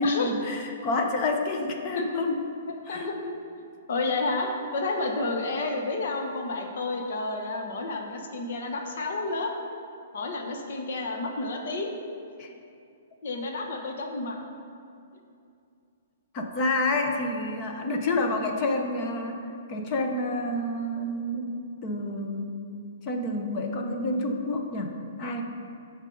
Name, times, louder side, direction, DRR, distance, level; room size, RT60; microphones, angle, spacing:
voice 1, 0.0-2.4 2.9-3.1 12.4-12.5 13.3-13.4 16.3-19.4 19.7-22.6 23.0-25.4, left 2 dB, 25° left, 3 dB, 0.9 m, -28 dB
voice 2, 2.9-3.3 3.9-9.5 10.1-11.9 13.2-14.4, left 3 dB, 55° left, 2 dB, 1.0 m, -30 dB
14.5 x 5.4 x 3.9 m, 2.5 s
hypercardioid pair, 170°, 0 cm